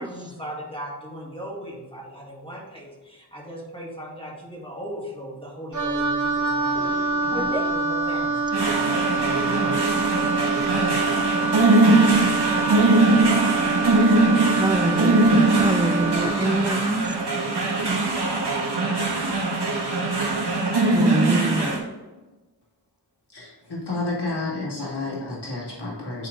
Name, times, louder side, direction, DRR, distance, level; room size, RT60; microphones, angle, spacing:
voice 1, 0.0-9.8, equal, 15° left, -3 dB, 2.1 m, -38 dB
Wind instrument woodwind instrument, 5.7-16.4, right 4 dB, 45° right, 1.4 m, -25 dB
voice 2, 6.8-7.7 14.5-17.1 20.8-21.8, right 1 dB, 10° right, 9 dB, 0.4 m, -26 dB
sound 1, 8.5-21.8, right 2 dB, 75° right, 1.5 m, -21 dB
voice 3, 23.3-26.3, left 2 dB, 75° left, -6 dB, 2.3 m, -30 dB
9.2 x 3.8 x 3.8 m, 1.2 s
wide cardioid pair, 45°, 41 cm